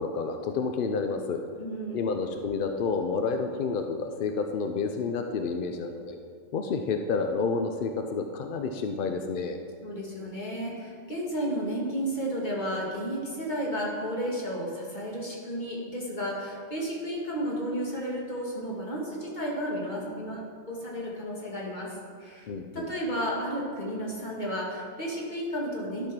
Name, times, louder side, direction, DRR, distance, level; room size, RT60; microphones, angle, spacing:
voice 1, 0.0-1.4 1.9-6.2 6.5-9.6 22.5-22.9, left 4 dB, 60° left, 5 dB, 0.5 m, -29 dB
voice 2, 1.6-2.1 9.8-26.1, equal, 35° left, -2 dB, 1.9 m, -33 dB
11.5 x 5.5 x 6.0 m, 2.1 s
omnidirectional pair, 1.5 m